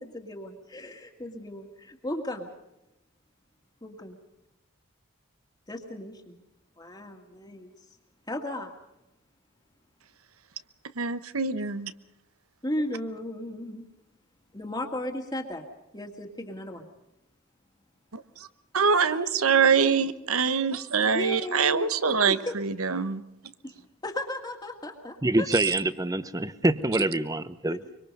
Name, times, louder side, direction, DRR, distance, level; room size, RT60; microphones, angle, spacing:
voice 1, 0.0-2.5 3.8-4.1 5.7-6.4 6.8-7.7 8.3-8.7 12.6-13.9 14.5-15.7 15.9-16.8 19.0-19.9 21.1-21.9 22.3-22.5 23.6-25.5 27.7-27.9, left 1 dB, 20° left, 2 dB, 2.0 m, -36 dB
voice 2, 11.0-11.9 18.1-18.5 18.7-23.2, right 6 dB, 85° right, 13 dB, 1.1 m, -24 dB
voice 3, 25.2-27.8, right 2 dB, 15° right, 14 dB, 0.8 m, -25 dB
24.5 x 24.0 x 5.4 m, 0.90 s
head